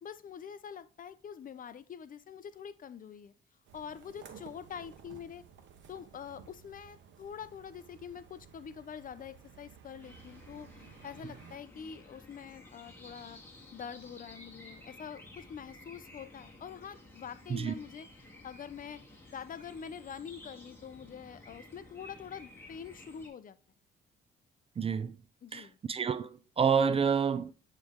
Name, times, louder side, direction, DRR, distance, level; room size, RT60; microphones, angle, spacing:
voice 1, 0.0-3.3 3.7-5.4 5.9-13.4 13.7-18.1 18.4-19.0 19.3-23.6 25.4-25.8, left 7 dB, 45° left, 0.5 m, -45 dB
sound 1, 3.7-11.6, right 7 dB, 70° right, 1.0 m, -55 dB
sound 2, 10.0-23.3, left 2 dB, 10° left, 1.9 m, -53 dB
voice 2, 24.8-25.2 25.5-27.5, right 6 dB, 30° right, 0.4 m, -29 dB
8.4 x 3.1 x 3.6 m
cardioid pair, 90°, 20 cm